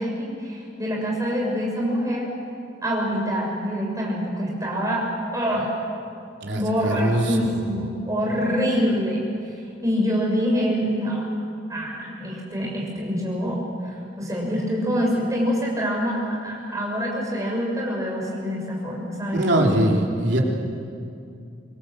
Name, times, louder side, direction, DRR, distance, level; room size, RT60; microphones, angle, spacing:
voice 1, 0.0-2.3 2.8-5.1 5.3-5.7 6.5-9.3 9.8-11.3 11.7-19.9, equal, 20° right, -2 dB, 6.4 m, -25 dB
voice 2, 6.4-7.5 19.3-20.4, right 1 dB, 75° right, 0 dB, 3.4 m, -22 dB
25.5 x 22.5 x 7.7 m, 2.4 s
head